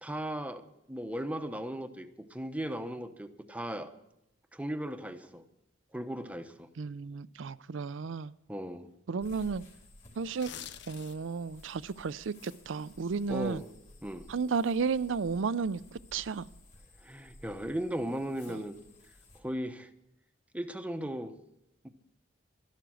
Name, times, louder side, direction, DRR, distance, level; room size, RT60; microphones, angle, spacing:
voice 1, 0.0-3.9 4.5-5.4 5.9-6.7 8.5-8.9 13.3-13.7 14.0-14.3 17.0-18.8 19.3-19.9 20.5-21.3 21.8-21.9, equal, 5° right, 8 dB, 0.9 m, -37 dB
voice 2, 6.8-8.3 9.1-9.6 10.2-10.5 10.9-13.6 14.3-16.5 18.5-18.6, right 5 dB, 75° right, 17 dB, 0.5 m, -33 dB
sound 1, 9.2-19.4, left 1 dB, 35° left, 3.3 m, -56 dB
sound 2, 10.3-11.4 11.8-12.0, left 10 dB, 60° left, 0.6 m, -45 dB
12.5 x 11.5 x 6.3 m, 0.83 s
head